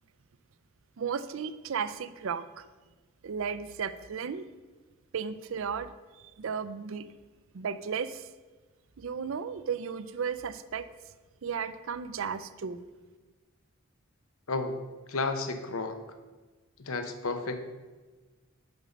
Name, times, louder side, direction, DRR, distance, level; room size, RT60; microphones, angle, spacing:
voice 1, 1.0-2.7 3.2-4.4 5.1-7.1 7.5-8.3 9.0-10.9 11.4-12.8, right 6 dB, 65° right, 14 dB, 0.4 m, -34 dB
voice 2, 14.5-14.8 15.1-16.0 16.8-17.6, left 3 dB, 75° left, 7 dB, 0.8 m, -32 dB
6.1 x 5.3 x 6.8 m, 1.3 s
head